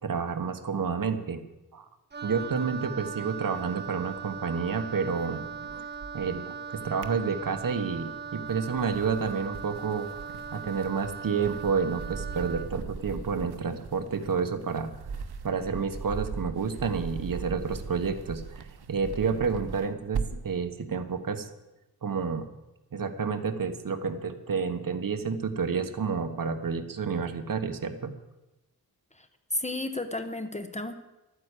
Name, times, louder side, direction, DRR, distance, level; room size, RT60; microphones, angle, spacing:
voice 1, 0.0-1.4 1.7-1.9 2.2-5.4 6.1-14.9 15.4-21.5 22.0-22.5 22.9-28.1, right 5 dB, 55° right, 9 dB, 1.3 m, -30 dB
Wind instrument woodwind instrument, 2.1-12.8, right 6 dB, 25° right, 0.7 m, -39 dB
sound 1, 2.4-4.5 4.8-6.4 6.8-7.8 8.3-20.6, right 5 dB, 70° right, 1.1 m, -40 dB
voice 2, 29.5-30.9, left 2 dB, 15° left, 8 dB, 0.9 m, -32 dB
12.5 x 9.6 x 8.3 m, 1.0 s
wide cardioid pair, 150°, 40 cm